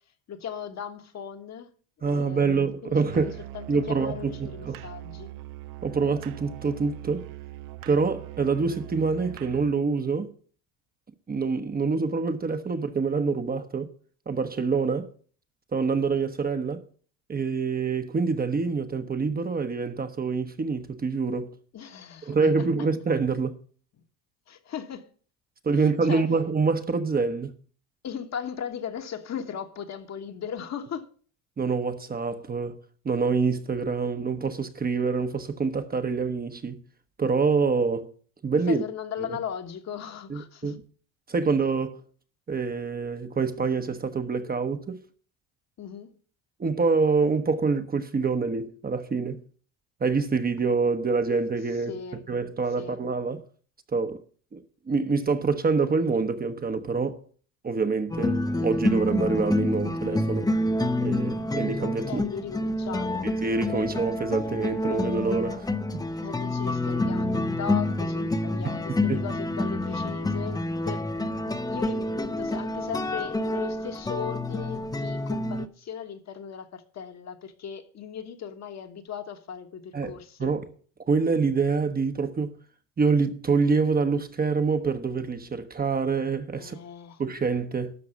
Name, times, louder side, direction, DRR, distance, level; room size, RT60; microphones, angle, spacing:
voice 1, 0.3-1.7 2.0-5.3 21.7-22.9 24.5-25.1 25.7-26.2 28.0-31.1 38.7-40.7 45.8-46.1 51.7-52.3 52.8-53.0 62.1-63.4 66.2-80.5 86.6-87.2, left 8 dB, 45° left, 1.4 m, -38 dB
voice 2, 2.0-3.4 3.7-4.8 5.8-7.3 7.9-10.3 11.3-13.9 14.3-15.1 15.7-16.8 17.3-21.5 22.3-23.6 25.6-27.5 31.6-32.8 33.0-36.8 37.2-38.1 38.4-38.8 40.3-40.8 41.3-42.0 42.5-45.0 46.6-49.4 50.0-51.9 52.3-53.4 53.9-54.2 54.5-54.6 54.9-57.2 57.6-60.5 61.0-62.2 63.4-65.7 68.6-69.2 79.9-80.7 81.1-82.6 83.0-86.8 87.2-87.9, right 4 dB, 25° right, 1.0 m, -26 dB
Musical instrument, 3.1-9.8, right 16 dB, 60° right, 0.6 m, -41 dB
sound 1, 58.1-75.7, left 1 dB, 10° left, 0.7 m, -28 dB
12.5 x 4.8 x 8.2 m
supercardioid pair, 100°, 39 cm